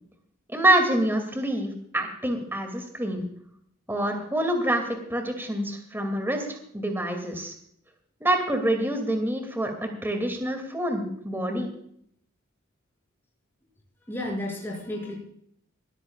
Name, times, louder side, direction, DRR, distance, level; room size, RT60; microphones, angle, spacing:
voice 1, 0.5-3.2 3.9-7.5 8.2-11.7, right 1 dB, 10° right, 4 dB, 2.4 m, -26 dB
voice 2, 14.1-15.2, left 1 dB, 10° left, -3 dB, 6.3 m, -32 dB
21.0 x 14.0 x 2.4 m, 0.67 s
head